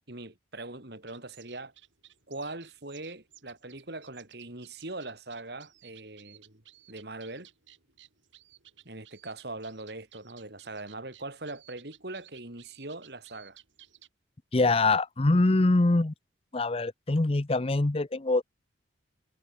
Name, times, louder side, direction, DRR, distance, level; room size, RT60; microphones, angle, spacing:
voice 1, 0.1-1.7 2.3-6.6 6.9-7.5 8.8-13.6, right 2 dB, 55° right, 3.2 m, -41 dB
sound 1, 0.9-14.1, right 13 dB, 80° right, 5.4 m, -58 dB
voice 2, 14.5-16.1 16.5-18.4, left 2 dB, 30° left, 0.7 m, -24 dB
head